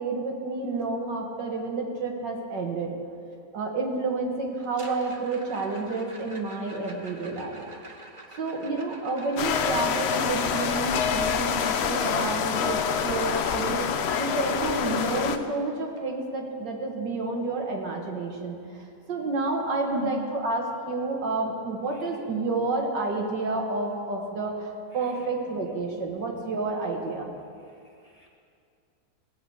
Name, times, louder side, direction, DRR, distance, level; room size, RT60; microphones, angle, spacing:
voice 1, 0.0-2.9 3.5-7.6 8.4-18.6 19.1-27.3, right 3 dB, 80° right, 1 dB, 2.2 m, -30 dB
sound 1, 4.6-12.6 14.9-15.0 15.2-15.5 16.0-16.1 16.6-16.7 18.6-18.7, right 2 dB, 25° right, 0.7 m, -47 dB
sound 2, 9.4-15.4, left 7 dB, 75° left, 0.6 m, -26 dB
voice 2, 19.9-20.3 21.9-22.1 24.9-25.3 27.6-28.3, equal, 20° left, -2 dB, 1.5 m, -39 dB
18.0 x 6.1 x 7.9 m, 2.4 s
omnidirectional pair, 1.9 m